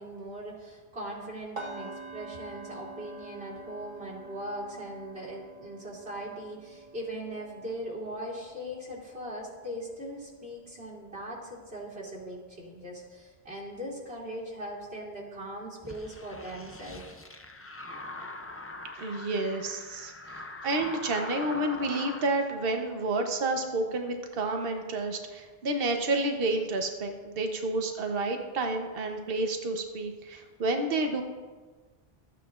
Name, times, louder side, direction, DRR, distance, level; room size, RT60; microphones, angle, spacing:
voice 1, 0.0-17.1, right 1 dB, 85° right, -7 dB, 2.8 m, -40 dB
sound 1, 1.6-11.5 11.8-12.1 12.5-12.7, right 2 dB, 30° right, 1.9 m, -47 dB
sound 2, 15.8-22.3, left 2 dB, 20° left, 0.4 m, -42 dB
voice 2, 19.0-31.2, right 2 dB, 65° right, 4 dB, 1.1 m, -30 dB
14.5 x 9.3 x 2.4 m, 1.4 s
omnidirectional pair, 1.0 m